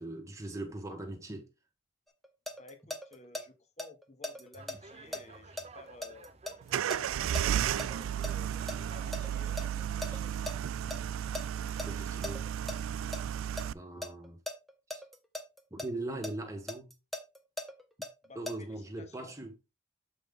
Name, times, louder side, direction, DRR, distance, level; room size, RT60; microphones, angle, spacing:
voice 1, 0.0-1.5 10.4-10.5 11.8-12.4 13.7-14.4 14.9-15.0 15.7-16.9 18.3-19.5, right 2 dB, 15° right, 1.2 m, -40 dB
sound 1, 2.1-3.4 3.8-8.4 8.7-10.5 10.9-11.0 11.3-12.8 13.1-13.6 14.0-15.9 16.2-18.5, left 1 dB, ahead, 0.8 m, -39 dB
voice 2, 2.6-6.3 7.0-10.5 18.2-19.3, left 3 dB, 35° left, 1.2 m, -55 dB
sound 2, 4.5-11.5, right 3 dB, 30° right, 0.6 m, -54 dB
sound 3, 6.7-13.7, right 9 dB, 80° right, 0.3 m, -33 dB
7.1 x 5.2 x 3.7 m
head